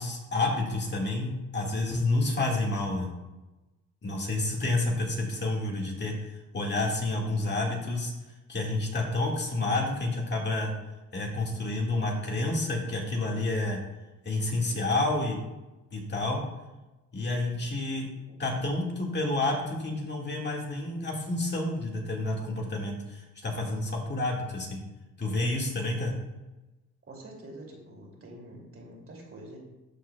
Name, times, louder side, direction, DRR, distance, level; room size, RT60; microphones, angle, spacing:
voice 1, 0.0-3.1 4.0-6.1 6.5-8.1 8.5-10.7 11.1-13.8 14.3-15.4 15.9-16.4 17.1-18.1 18.4-24.8 25.2-26.1, left 2 dB, 35° left, -1 dB, 1.9 m, -29 dB
voice 2, 27.0-29.6, right 1 dB, 45° right, -1 dB, 2.6 m, -46 dB
13.5 x 4.7 x 2.3 m, 1.1 s
cardioid pair, 90°, 30 cm